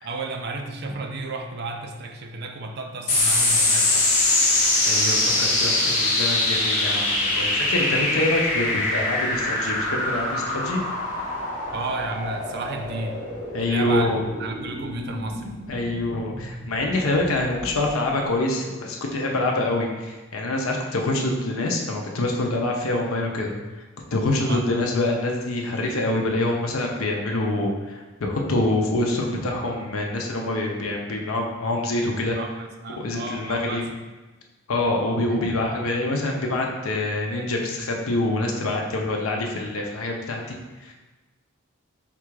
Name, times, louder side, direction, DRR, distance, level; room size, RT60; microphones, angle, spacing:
voice 1, 0.0-4.1 11.7-13.2 13.6-14.1 14.4-15.5 24.4-24.6 32.4-33.9 35.3-35.4, right 3 dB, 50° right, 4 dB, 0.4 m, -32 dB
sound 1, 3.1-17.9, left 2 dB, 35° left, 0.9 m, -24 dB
voice 2, 4.8-10.8 13.5-14.2 15.7-23.5 24.1-32.4 33.0-33.8 34.7-40.9, left 2 dB, 85° left, 0 dB, 0.6 m, -25 dB
3.7 x 2.4 x 4.6 m, 1.2 s
head